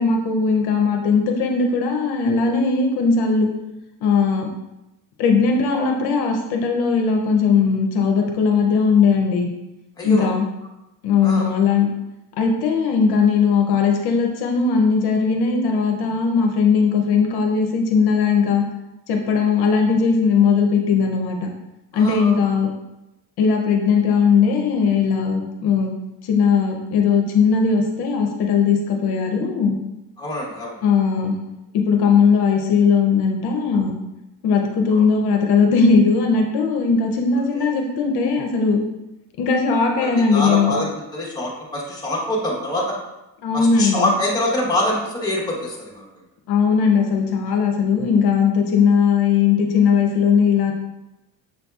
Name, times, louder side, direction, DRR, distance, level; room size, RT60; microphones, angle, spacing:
voice 1, 0.0-3.5 4.0-4.5 5.2-9.5 10.0-10.5 11.0-11.9 12.4-18.6 19.1-21.5 21.9-22.7 23.4-25.9 26.2-29.8 30.8-31.3 31.7-34.0 34.4-38.8 39.4-40.7 43.4-44.0 46.5-50.7, left 5 dB, 65° left, 2 dB, 0.6 m, -18 dB
voice 2, 10.0-10.3 11.2-11.5 21.9-22.3 30.2-30.8 34.9-35.0 37.5-37.7 40.0-43.0 43.5-46.1, left 1 dB, 10° left, -4 dB, 1.0 m, -25 dB
6.4 x 2.6 x 2.3 m, 0.96 s
cardioid pair, 135°, 40 cm